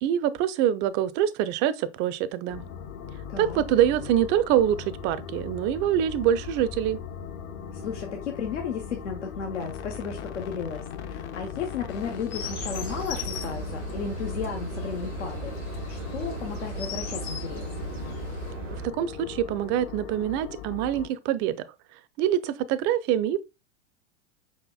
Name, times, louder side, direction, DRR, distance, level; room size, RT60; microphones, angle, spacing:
voice 1, 0.0-2.6 3.4-7.0 19.0-21.6 22.2-23.5, right 10 dB, 30° right, 0.4 m, -25 dB
sound 1, 2.5-21.1, left 7 dB, 30° left, 0.5 m, -39 dB
voice 2, 3.3-3.6 7.7-17.7, left 6 dB, 80° left, 0.9 m, -34 dB
Chirp tweet, 11.9-18.5, left 7 dB, 50° left, 1.9 m, -41 dB
sound 2, 12.4-18.9, right 5 dB, 90° right, 0.7 m, -37 dB
5.2 x 4.2 x 2.2 m
hypercardioid pair, 95°, 36 cm